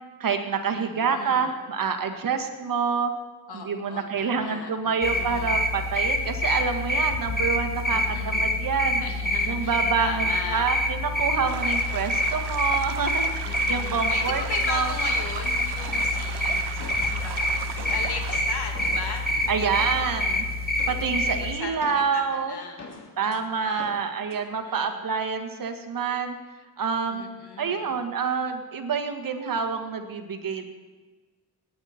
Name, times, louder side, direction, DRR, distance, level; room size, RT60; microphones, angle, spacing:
voice 1, 0.2-3.1 3.5-9.0 9.5-14.4 14.7-14.9 19.5-20.4 20.9-22.5 23.2-26.4 26.8-27.2 27.6-30.7, right 5 dB, 60° right, 6 dB, 1.7 m, -27 dB
voice 2, 0.7-1.5 3.5-5.6 7.8-8.5 9.0-10.7 13.4-19.3 19.6-19.9 21.2-23.8 24.4-25.0 27.1-28.0, left 5 dB, 80° left, 3 dB, 2.3 m, -38 dB
sound 1, 5.0-21.5, left 1 dB, 25° left, 1.7 m, -27 dB
sound 2, 11.5-18.4, right 12 dB, 85° right, 0.7 m, -38 dB
sound 3, 15.9-17.2 17.5-20.3 20.8-21.2 21.8-23.4 23.8-24.4, left 3 dB, 45° left, 2.4 m, -43 dB
19.0 x 9.3 x 4.4 m, 1.3 s
cardioid pair, 70°, 39 cm